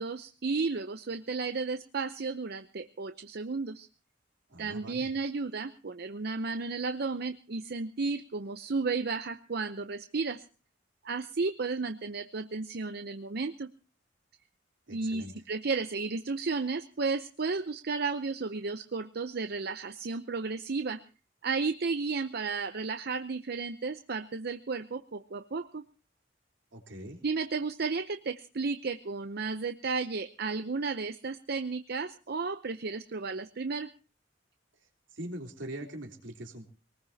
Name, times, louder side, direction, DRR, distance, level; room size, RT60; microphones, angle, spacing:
voice 1, 0.0-3.9 4.6-10.4 11.0-13.7 14.9-21.0 21.4-25.8 27.2-33.9, right 4 dB, 55° right, 10 dB, 0.7 m, -33 dB
voice 2, 4.5-5.1 14.9-15.4 26.7-27.2 34.8-36.7, right 1 dB, 80° right, 2 dB, 3.4 m, -43 dB
22.5 x 19.5 x 2.8 m, 0.35 s
head